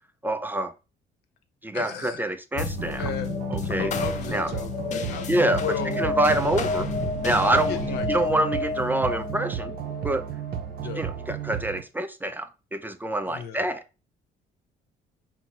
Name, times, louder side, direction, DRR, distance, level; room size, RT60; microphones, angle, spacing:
voice 1, 0.2-0.7 1.6-3.1 3.5-3.9 4.3-4.5 5.3-5.6 6.0-6.9 7.2-7.8 8.1-9.7 10.0-10.2 11.0-13.8, right 1 dB, 10° right, 0.3 m, -26 dB
voice 2, 1.7-2.3 3.0-3.3 3.8-6.0 7.7-8.3 10.8-11.0 13.3-13.6, left 8 dB, 80° left, 0.8 m, -35 dB
sound 1, 2.6-11.3, left 4 dB, 45° left, 0.6 m, -31 dB
sound 2, 2.6-11.8, right 9 dB, 60° right, 0.6 m, -34 dB
5.6 x 2.1 x 3.0 m
cardioid pair, 110°, 17 cm